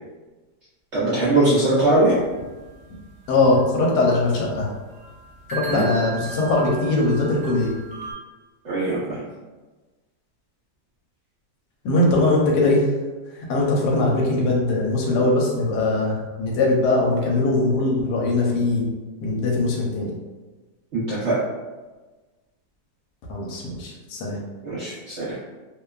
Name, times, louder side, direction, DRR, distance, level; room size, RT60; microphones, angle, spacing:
voice 1, 0.9-2.1 5.7-5.9 8.6-9.2 20.9-21.3 24.6-25.4, right 2 dB, 65° right, -9 dB, 0.6 m, -21 dB
sound 1, 1.5-8.1, right 5 dB, 30° left, 1.1 m, -38 dB
voice 2, 3.3-4.7 5.5-7.7 11.8-12.8 13.5-18.9 19.2-20.1 23.3-24.4, left 2 dB, 75° left, -2 dB, 1.1 m, -21 dB
2.8 x 2.2 x 2.2 m, 1.2 s
omnidirectional pair, 1.8 m